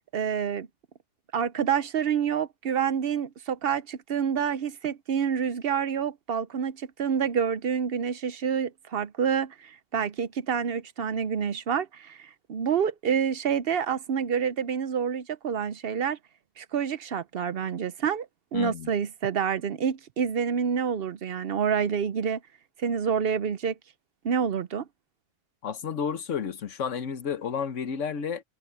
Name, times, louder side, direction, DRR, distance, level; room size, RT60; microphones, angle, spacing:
voice 1, 0.1-0.7 1.3-16.2 16.6-18.3 18.5-22.4 22.8-23.7 24.2-24.8, right 7 dB, 60° right, 0.8 m, -28 dB
voice 2, 18.5-18.9 25.6-28.4, left 7 dB, 85° left, 1.4 m, -31 dB
omnidirectional pair, 1.2 m